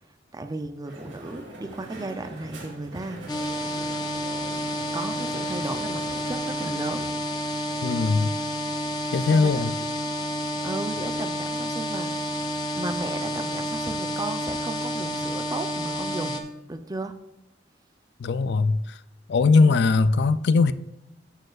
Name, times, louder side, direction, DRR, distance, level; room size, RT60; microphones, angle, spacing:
voice 1, 0.3-3.2 3.7-3.8 4.9-7.1 9.3-9.7 10.6-12.3 12.7-16.4 16.7-17.2 19.6-19.8, right 2 dB, 20° right, 0.5 m, -34 dB
Crowd, 0.8-7.1, right 1 dB, 85° right, 2.4 m, -42 dB
sound 1, 3.3-16.4, equal, 20° left, 0.8 m, -30 dB
voice 2, 7.8-8.3 9.1-9.7 18.2-19.0 19.3-20.7, left 4 dB, 65° left, 0.4 m, -20 dB
12.5 x 6.5 x 2.4 m
head